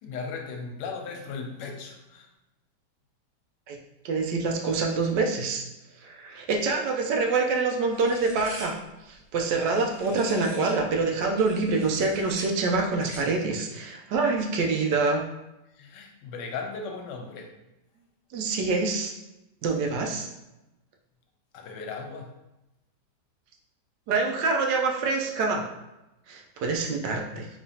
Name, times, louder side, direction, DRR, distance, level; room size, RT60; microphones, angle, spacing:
voice 1, 0.0-2.3 15.7-17.5 21.5-22.3, left 4 dB, 85° left, 3 dB, 1.3 m, -37 dB
voice 2, 4.0-5.6 6.0-8.8 9.1-15.2 18.3-19.1 19.6-20.3 24.1-25.7 26.3-27.5, right 3 dB, 85° right, 1 dB, 1.2 m, -26 dB
sound 1, 7.9-10.8 11.2-13.4, right 1 dB, 35° right, 1.2 m, -44 dB
4.0 x 3.0 x 2.7 m, 0.94 s
omnidirectional pair, 1.9 m